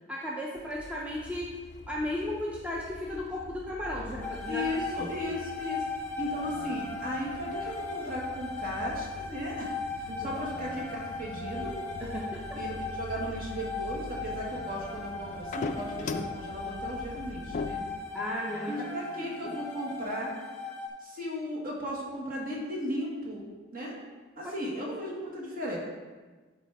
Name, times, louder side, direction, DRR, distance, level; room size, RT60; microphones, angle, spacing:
voice 1, 0.1-1.6 1.9-4.7 5.0-5.1 10.1-10.3 12.0-12.6 18.1-18.8, left 1 dB, 5° right, -3 dB, 0.7 m, -35 dB
sound 1, 0.6-18.0, left 3 dB, 40° left, 0.4 m, -43 dB
sound 2, 4.2-20.9, left 4 dB, 10° left, 1.0 m, -38 dB
voice 2, 4.5-5.9 6.2-11.8 12.5-17.8 18.7-20.3 21.0-23.4 23.7-23.9 24.4-25.8, equal, 50° right, -3 dB, 1.9 m, -36 dB
11.5 x 4.2 x 3.5 m, 1.3 s
head